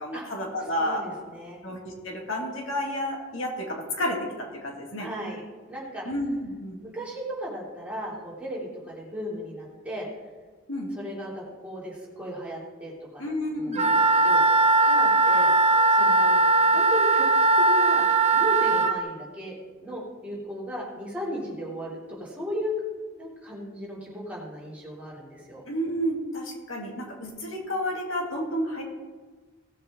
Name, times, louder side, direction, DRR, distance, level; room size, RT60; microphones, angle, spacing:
voice 1, 0.0-1.0 1.6-5.1 6.1-6.8 10.7-10.9 13.2-14.0 25.7-28.8, equal, 70° left, 0 dB, 2.3 m, -31 dB
voice 2, 0.8-1.6 5.0-5.4 5.7-6.0 6.8-10.1 10.9-13.2 13.5-13.7 14.2-14.4 14.9-15.5 15.9-16.4 16.6-17.3 17.7-18.0 18.3-19.5 19.8-22.7 23.2-25.6, equal, 5° right, -7 dB, 3.2 m, -36 dB
Wind instrument woodwind instrument, 13.7-18.9, right 3 dB, 30° right, 0.7 m, -20 dB
18.0 x 7.9 x 3.8 m, 1.4 s
head